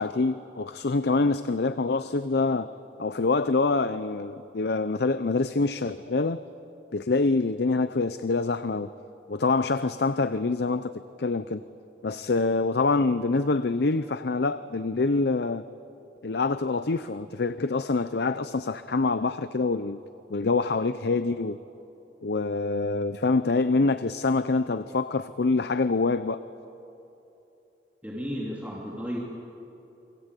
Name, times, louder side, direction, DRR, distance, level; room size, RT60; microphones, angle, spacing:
voice 1, 0.0-2.7 3.0-6.4 6.9-8.9 9.3-10.9 11.2-11.6 12.0-15.6 16.2-20.0 20.3-21.6 22.2-26.4, left 3 dB, 65° left, 13 dB, 0.6 m, -25 dB
voice 2, 28.0-29.2, equal, 10° right, -4 dB, 2.9 m, -33 dB
29.0 x 23.5 x 8.3 m, 2.9 s
head